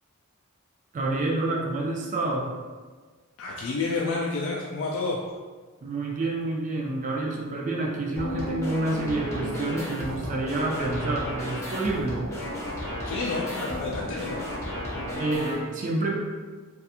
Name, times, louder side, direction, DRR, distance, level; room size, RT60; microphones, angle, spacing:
voice 1, 0.9-2.5 5.8-12.2 14.9-16.1, right 2 dB, 35° right, -1 dB, 0.3 m, -28 dB
voice 2, 3.4-5.2 13.0-14.4, left 3 dB, 60° left, -2 dB, 0.3 m, -29 dB
sound 1, 8.2-15.5, equal, 15° left, 0.6 m, -33 dB
2.4 x 2.3 x 2.7 m, 1.4 s
head